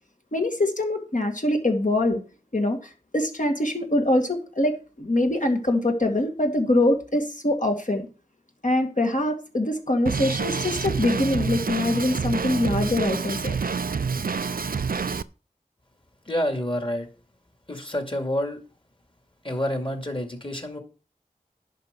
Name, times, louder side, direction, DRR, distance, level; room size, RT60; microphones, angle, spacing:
voice 1, 0.3-2.2 2.5-2.8 3.1-8.1 8.6-13.6, left 1 dB, 60° left, 2.1 m, -24 dB
Drum kit, 10.1-15.2, right 5 dB, 75° right, 0.5 m, -27 dB
voice 2, 16.2-17.1 17.7-18.6 19.4-20.8, left 1 dB, 35° left, 2.3 m, -28 dB
11.0 x 4.6 x 6.7 m
wide cardioid pair, 45°, 15 cm